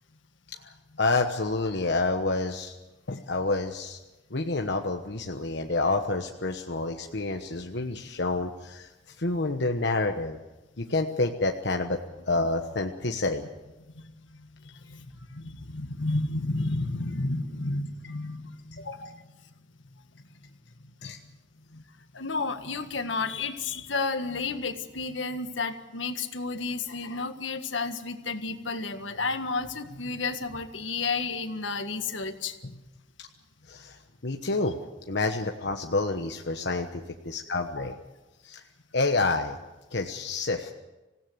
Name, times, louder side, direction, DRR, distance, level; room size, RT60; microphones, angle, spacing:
voice 1, 1.0-2.7 3.1-4.0 4.3-8.9 9.2-10.4 10.8-12.0 12.2-13.4 21.0-21.2 33.7-34.8 35.1-37.9 38.4-38.6 38.9-39.6 39.9-40.7, left 3 dB, 60° left, 4 dB, 1.2 m, -28 dB
voice 2, 13.9-19.2 21.7-21.8 22.1-32.6 37.8-37.9, left 3 dB, 80° left, 8 dB, 1.7 m, -32 dB
26.0 x 17.0 x 8.0 m, 1.1 s
head